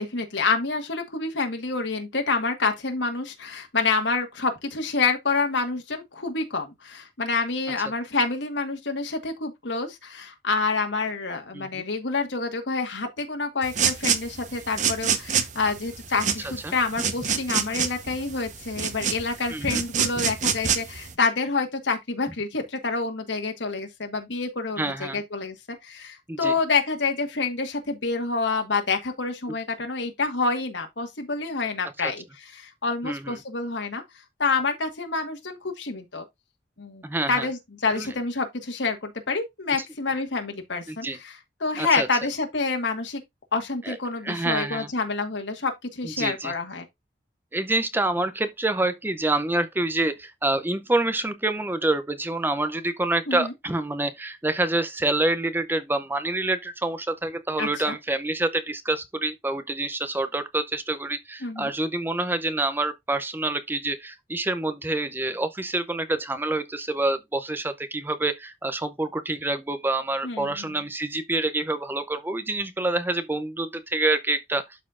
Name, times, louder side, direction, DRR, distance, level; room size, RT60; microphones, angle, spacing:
voice 1, 0.0-25.5 25.8-34.0 34.4-36.2 36.8-43.2 43.5-46.8 53.3-53.5 57.6-57.9 61.4-61.7 70.2-70.8, left 4 dB, 85° left, 1.5 m, -28 dB
sound 1, 13.6-21.1, right 7 dB, 45° right, 0.9 m, -27 dB
voice 2, 19.5-19.8 24.8-25.2 26.3-26.5 32.0-32.1 33.0-33.4 37.0-37.5 38.0-38.1 39.8-39.9 40.9-41.2 41.8-42.1 43.8-44.0 44.2-44.9 46.0-46.5 47.5-74.6, right 2 dB, 10° right, 0.5 m, -27 dB
12.0 x 4.2 x 2.4 m
head